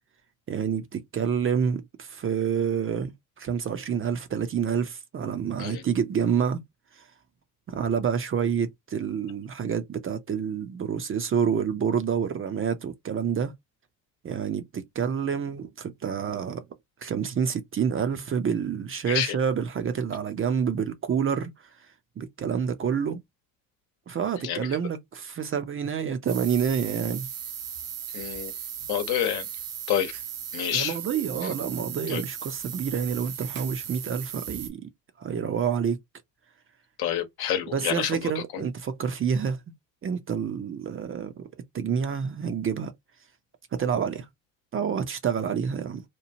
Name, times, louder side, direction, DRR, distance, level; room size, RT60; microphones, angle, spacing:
voice 1, 0.5-3.1 3.4-6.6 7.0-7.1 7.7-13.5 14.2-16.6 17.0-21.5 22.2-23.2 24.1-27.3 30.7-34.9 35.2-36.0 37.7-39.6 40.0-41.5 41.7-42.9 43.7-44.3 44.7-46.0, right 7 dB, 30° right, 0.5 m, -28 dB
sound 1, 26.3-34.7, right 9 dB, 80° right, 0.9 m, -37 dB
voice 2, 28.1-28.5 28.9-29.5 29.9-30.1 30.5-31.0 31.4-31.5 32.1-32.2 37.0-38.7, left 10 dB, 60° left, 1.0 m, -28 dB
2.9 x 2.3 x 2.7 m
hypercardioid pair, 60°, 41 cm